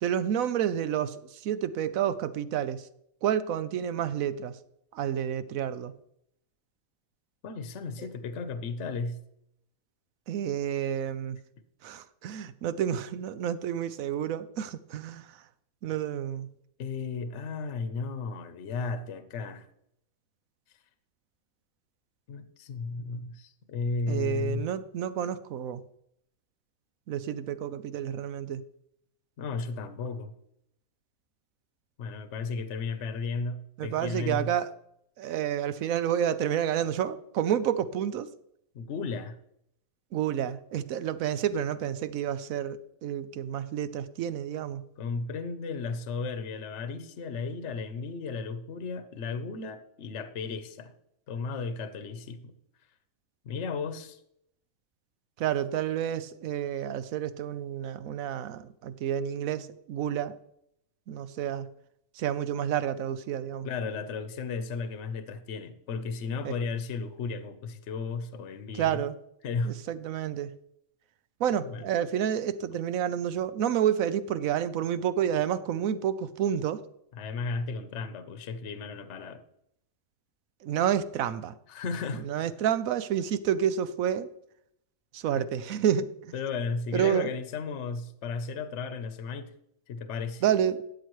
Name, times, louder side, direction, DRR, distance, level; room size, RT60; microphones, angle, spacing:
voice 1, 0.0-1.2 1.4-2.8 3.2-4.6 4.9-5.9 8.0-8.1 10.3-11.4 11.8-15.2 15.8-16.5 24.1-25.8 27.1-28.6 33.8-34.7 35.2-38.3 40.1-44.8 55.4-60.3 61.1-61.7 62.2-63.7 66.4-66.5 68.8-69.1 69.7-70.5 71.4-76.8 80.6-81.5 82.2-84.3 85.1-86.1 86.9-87.3 90.4-90.8, right 9 dB, 75° right, 1.0 m, -29 dB
voice 2, 7.4-9.2 16.8-19.7 22.3-24.7 29.4-30.3 32.0-34.5 38.7-39.4 45.0-50.9 51.3-52.5 53.4-54.2 63.6-69.0 69.4-69.8 71.6-71.9 77.1-79.4 81.7-82.5 85.3-85.4 86.3-89.5 89.9-90.4, left 4 dB, 55° left, 1.1 m, -34 dB
12.5 x 8.5 x 3.1 m
omnidirectional pair, 1.5 m